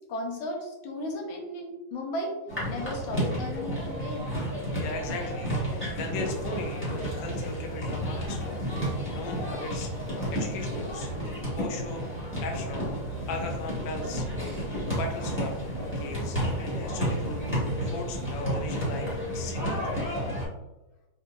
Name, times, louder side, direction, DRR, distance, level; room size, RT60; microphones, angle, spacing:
voice 1, 0.1-2.3 2.7-4.4, left 1 dB, 85° left, 1 dB, 1.5 m, -35 dB
sound 1, 2.5-20.5, equal, 5° left, 1.1 m, -31 dB
voice 2, 4.8-10.0 10.3-11.1 11.5-12.0 12.4-12.9 13.3-14.3 15.0-15.5 16.0-19.1 19.3-19.9, left 3 dB, 70° left, 2 dB, 0.9 m, -38 dB
4.4 x 2.7 x 2.4 m, 1.0 s
omnidirectional pair, 2.2 m